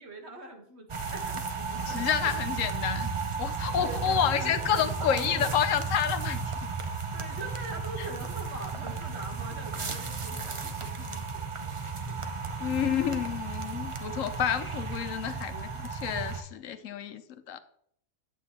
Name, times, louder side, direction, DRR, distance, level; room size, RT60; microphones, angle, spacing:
voice 1, 0.0-2.3 3.8-5.5 7.1-12.4 16.9-17.0, right 2 dB, 55° right, 1.5 m, -43 dB
sound 1, 0.9-16.4, right 5 dB, 35° right, 0.5 m, -34 dB
voice 2, 1.9-3.1 3.4-6.7 8.0-8.1 12.6-17.6, left 9 dB, 80° left, 1.0 m, -29 dB
9.5 x 8.2 x 2.9 m
omnidirectional pair, 1.4 m